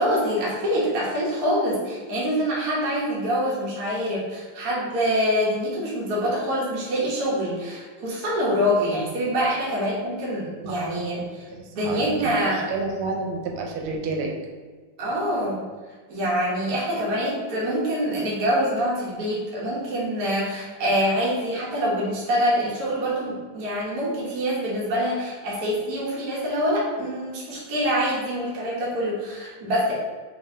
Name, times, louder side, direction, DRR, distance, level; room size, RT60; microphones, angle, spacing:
voice 1, 0.0-12.7 15.0-15.6 16.1-29.9, equal, 55° right, -6 dB, 1.1 m, -25 dB
voice 2, 10.6-11.3 11.5-14.3, right 3 dB, 85° right, 2 dB, 1.4 m, -31 dB
3.9 x 3.3 x 2.6 m, 1.4 s
omnidirectional pair, 2.4 m